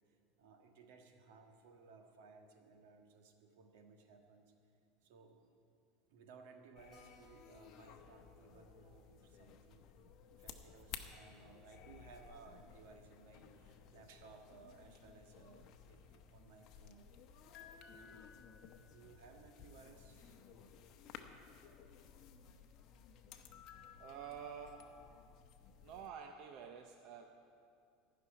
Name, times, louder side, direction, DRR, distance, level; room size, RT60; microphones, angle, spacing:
voice 1, 0.4-4.5 5.0-5.4 6.1-17.1 17.9-18.3 18.8-20.6 23.7-24.0, right 4 dB, 75° right, 4 dB, 1.5 m, -61 dB
sound 1, 6.7-26.1, left 8 dB, 45° left, 0.9 m, -57 dB
Keyboard (musical), 6.9-12.0 12.2-12.3 12.6-12.7 13.0-13.1 13.7-14.0, left 4 dB, 20° left, 3.6 m, -70 dB
voice 2, 24.0-24.9 25.8-27.3, right 7 dB, 50° right, 4 dB, 0.8 m, -49 dB
15.0 x 6.2 x 9.4 m, 2.4 s
supercardioid pair, 145°, 0 cm